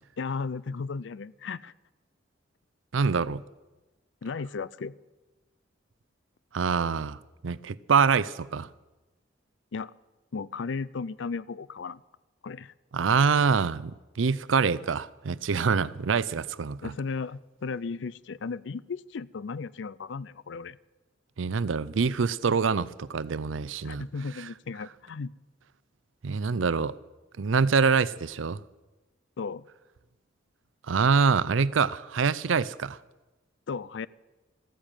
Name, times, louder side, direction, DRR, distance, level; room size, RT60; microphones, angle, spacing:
voice 1, 0.2-1.7 4.2-4.9 9.7-9.9 10.3-12.0 12.4-12.7 16.8-20.8 23.8-25.3 29.4-29.6 33.7-34.1, left 4 dB, 70° left, 0.5 m, -35 dB
voice 2, 2.9-3.4 6.5-8.7 12.9-16.9 21.4-24.1 24.4-24.5 26.2-26.9 27.4-28.6 30.9-33.0, right 5 dB, 90° right, 0.5 m, -25 dB
14.5 x 9.8 x 9.0 m
head